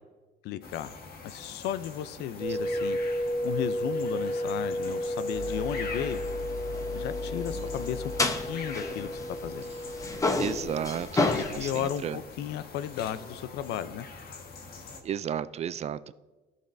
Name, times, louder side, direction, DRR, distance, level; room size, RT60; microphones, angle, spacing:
voice 1, 0.4-1.0 1.2-3.0 3.4-6.2 6.9-8.1 8.5-9.1 9.4-9.7 11.3-14.1, left 11 dB, 80° left, 14 dB, 0.5 m, -34 dB
sound 1, 0.6-15.0, left 4 dB, 65° left, 1.4 m, -44 dB
sound 2, 2.4-10.7, equal, 20° right, 1.4 m, -33 dB
sound 3, 5.4-9.6 9.9-12.0, left 3 dB, 20° left, 0.8 m, -32 dB
voice 2, 10.4-12.2 15.0-16.2, right 9 dB, 40° right, 16 dB, 0.4 m, -34 dB
15.0 x 6.6 x 2.6 m, 1.2 s
cardioid pair, 110°, 17 cm